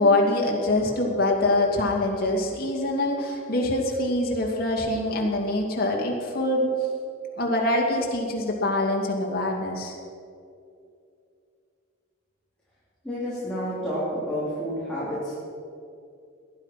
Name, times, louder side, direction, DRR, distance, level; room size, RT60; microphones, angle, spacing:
voice 1, 0.0-6.7 7.4-10.0, left 2 dB, 50° left, -1 dB, 2.7 m, -24 dB
voice 2, 13.0-15.4, equal, 5° left, -10 dB, 3.5 m, -30 dB
18.5 x 11.0 x 6.0 m, 2.5 s
head